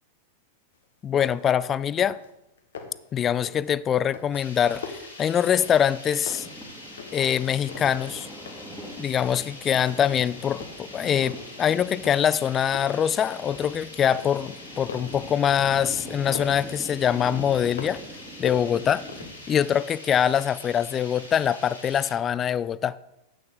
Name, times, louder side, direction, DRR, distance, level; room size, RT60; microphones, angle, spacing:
sound 1, 0.7-0.8 1.2-1.6 1.9-2.3 2.6-3.1 3.4-3.8 4.1-6.0 6.3-7.3 7.6-8.8 9.2-9.4 9.8-10.3 10.6-11.5 12.0-12.4 12.7-13.8 14.1-16.6 17.1-18.1 18.4-19.5, left 5 dB, 65° left, 1.3 m, -41 dB
voice 1, 1.0-2.2 3.1-6.5 7.1-8.3 9.0-18.0 18.4-19.0 19.5-23.0, left 9 dB, 25° left, 0.3 m, -24 dB
sound 2, 4.3-22.1, left 2 dB, 85° left, 3.0 m, -44 dB
Thunder, 6.2-19.3, right 1 dB, 10° right, 1.8 m, -43 dB
9.5 x 8.7 x 3.9 m
figure-of-eight pair, 90°, 0 cm